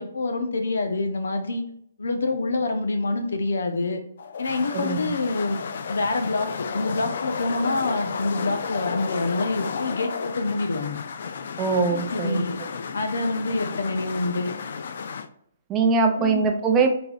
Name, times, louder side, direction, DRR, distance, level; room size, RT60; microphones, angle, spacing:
voice 1, 0.0-1.6 2.0-4.0 4.4-5.6 5.9-11.0 11.9-12.6 12.9-14.5 16.1-16.5, left 3 dB, 85° left, 5 dB, 0.8 m, -26 dB
sound 1, 4.2-15.3, left 5 dB, 55° left, 0.4 m, -33 dB
voice 2, 4.7-5.1 11.6-12.4 15.7-17.0, right 4 dB, 15° right, 3 dB, 0.5 m, -22 dB
3.9 x 2.9 x 3.8 m, 0.68 s
hypercardioid pair, 165°, 0 cm